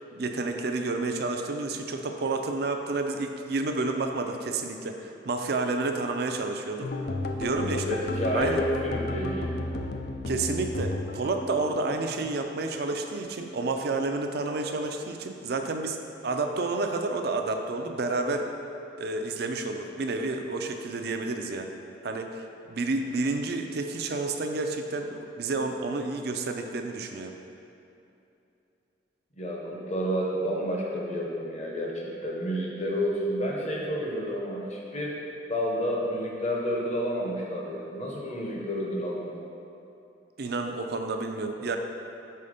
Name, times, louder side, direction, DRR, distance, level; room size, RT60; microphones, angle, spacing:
voice 1, 0.1-6.9 7.4-7.9 8.3-8.6 10.3-16.0 16.2-18.5 19.0-21.7 22.0-27.3 40.4-41.8, right 3 dB, 55° right, 5 dB, 0.4 m, -30 dB
sound 1, 6.8-13.0 13.2-14.3 14.6-14.9 15.2-15.4, left 1 dB, 55° left, 0.4 m, -33 dB
voice 2, 7.8-9.6 29.4-35.2 35.5-39.3, equal, 35° left, -2 dB, 0.9 m, -30 dB
5.6 x 4.2 x 5.1 m, 2.7 s
head